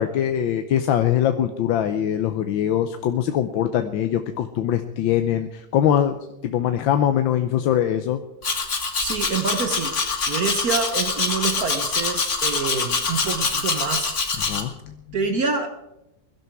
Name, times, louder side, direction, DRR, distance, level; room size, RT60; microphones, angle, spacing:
voice 1, 0.0-6.2 6.4-8.2 14.4-15.0, left 10 dB, 80° left, 8 dB, 1.5 m, -22 dB
Domestic sounds home sounds, 8.4-14.6, left 4 dB, 40° left, 1.9 m, -25 dB
voice 2, 9.0-14.5 15.1-15.7, right 5 dB, 55° right, 7 dB, 1.5 m, -27 dB
21.5 x 12.5 x 4.6 m, 0.92 s
omnidirectional pair, 2.1 m